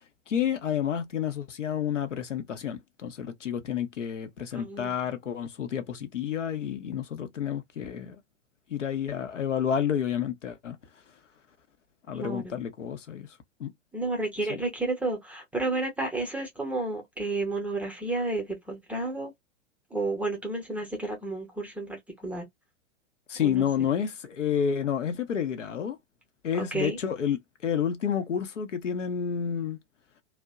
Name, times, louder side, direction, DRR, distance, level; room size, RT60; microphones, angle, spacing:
voice 1, 0.3-8.2 8.7-10.8 12.1-13.3 13.6-13.7 14.5-14.6 23.3-26.0 26.4-29.8, left 8 dB, 75° left, 0.8 m, -30 dB
voice 2, 4.5-5.0 12.1-12.6 13.9-19.3 19.9-22.4 23.4-23.9 26.7-27.0, right 2 dB, 5° right, 0.6 m, -31 dB
2.6 x 2.1 x 2.3 m
figure-of-eight pair, 100°, 37 cm